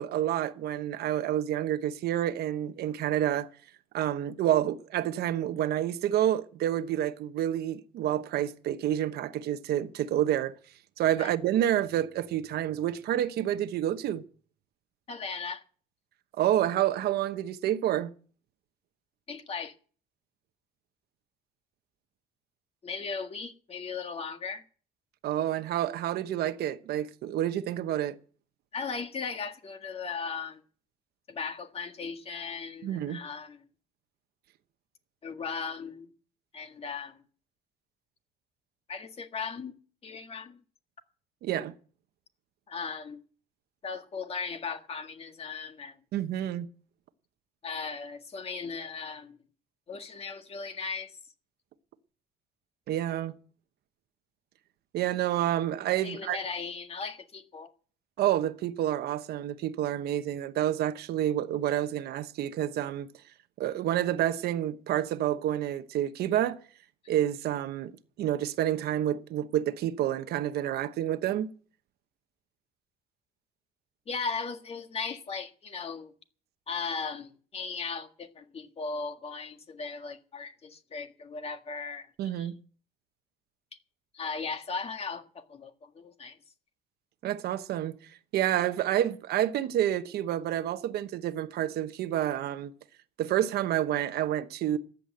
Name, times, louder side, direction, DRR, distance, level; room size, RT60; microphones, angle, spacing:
voice 1, 0.0-3.5 3.9-10.5 11.0-14.2 16.4-18.1 25.2-28.2 32.8-33.2 41.4-41.7 46.1-46.7 52.9-53.4 54.9-56.4 58.2-63.1 63.6-66.6 67.1-67.9 68.2-71.5 82.2-82.5 87.2-88.0 88.3-92.7 93.2-94.8, right 11 dB, 70° right, 1.1 m, -29 dB
voice 2, 15.1-15.6 19.3-19.7 22.8-24.6 28.7-30.6 31.3-33.7 35.2-36.1 36.5-37.2 38.9-39.8 40.0-40.6 42.7-43.2 43.8-46.0 47.6-49.4 49.9-51.2 56.0-57.7 74.1-76.1 76.7-82.5 83.7-83.8 84.1-86.4, left 5 dB, 35° left, 1.7 m, -37 dB
14.0 x 8.5 x 7.8 m
cardioid pair, 110°, 17 cm